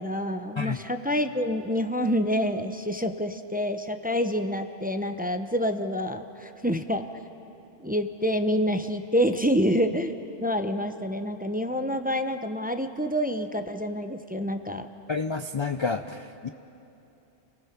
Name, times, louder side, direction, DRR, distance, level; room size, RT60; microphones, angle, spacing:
voice 1, 0.0-7.1 7.8-14.9, equal, 10° right, 7 dB, 0.6 m, -27 dB
voice 2, 15.1-16.5, left 4 dB, 50° left, 9 dB, 0.3 m, -29 dB
30.0 x 19.0 x 5.9 m, 2.9 s
omnidirectional pair, 1.2 m